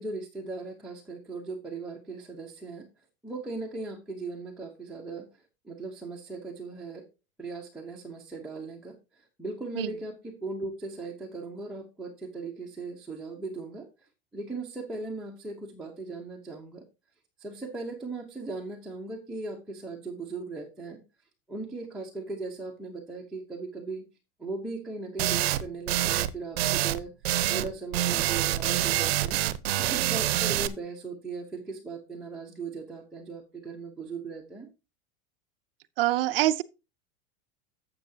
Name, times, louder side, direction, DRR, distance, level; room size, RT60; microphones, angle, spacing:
voice 1, 0.0-2.9 3.2-7.0 7.4-16.8 17.4-21.0 21.5-24.0 24.4-27.1 27.5-29.4 29.8-34.7, right 3 dB, ahead, 0.9 m, -38 dB
sound 1, 25.2-25.6 25.9-26.3 26.6-27.0 27.2-27.7 27.9-30.7, right 14 dB, 90° right, 0.9 m, -26 dB
voice 2, 36.0-36.6, right 15 dB, 65° right, 0.6 m, -24 dB
12.0 x 7.6 x 2.8 m
supercardioid pair, 180°, 30 cm